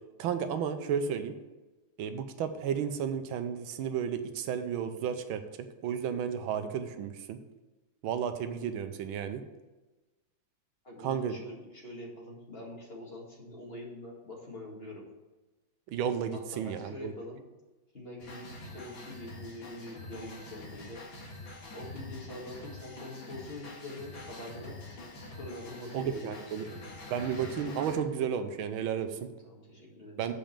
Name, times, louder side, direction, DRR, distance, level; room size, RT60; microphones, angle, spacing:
voice 1, 0.2-1.3 2.0-5.4 5.8-7.4 8.0-9.4 11.0-11.3 15.9-17.1 25.9-26.6 27.1-29.2 30.2-30.3, right 8 dB, 85° right, 9 dB, 1.5 m, -32 dB
voice 2, 10.8-15.0 16.3-17.4 17.9-21.0 21.7-24.8 25.4-26.8 29.0-30.2, left 1 dB, 30° left, -3 dB, 2.1 m, -44 dB
sound 1, 18.2-28.0, left 2 dB, 75° left, 2.4 m, -46 dB
7.5 x 5.2 x 7.3 m, 1.1 s
omnidirectional pair, 2.2 m